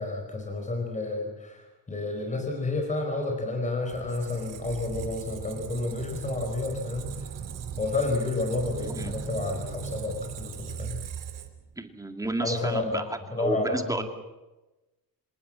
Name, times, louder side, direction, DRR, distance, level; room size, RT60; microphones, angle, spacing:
voice 1, 0.0-7.4 7.8-11.0 12.4-14.0, left 2 dB, 20° left, 2 dB, 4.7 m, -30 dB
Squeak, 3.9-11.7, right 7 dB, 60° right, 3.0 m, -38 dB
voice 2, 11.8-14.0, right 2 dB, 10° right, 5 dB, 2.3 m, -31 dB
26.5 x 19.0 x 7.5 m, 1.1 s
cardioid pair, 140°, 36 cm